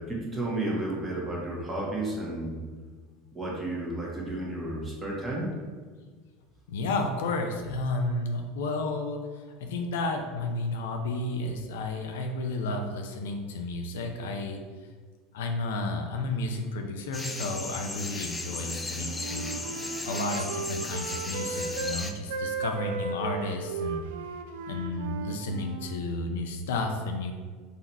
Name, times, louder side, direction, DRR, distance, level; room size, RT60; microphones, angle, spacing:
voice 1, 0.0-2.6 3.3-5.5, right 1 dB, 15° right, -4 dB, 1.3 m, -32 dB
voice 2, 6.7-14.6 15.3-19.6 20.1-24.0 24.7-27.3, left 2 dB, 85° left, 3 dB, 0.5 m, -32 dB
sound 1, 17.1-22.1, left 2 dB, 15° left, 0.4 m, -36 dB
Wind instrument woodwind instrument, 18.9-22.0 22.3-26.0, right 5 dB, 85° right, 0.3 m, -36 dB
4.0 x 2.8 x 4.5 m, 1.5 s
supercardioid pair, 115°, 0 cm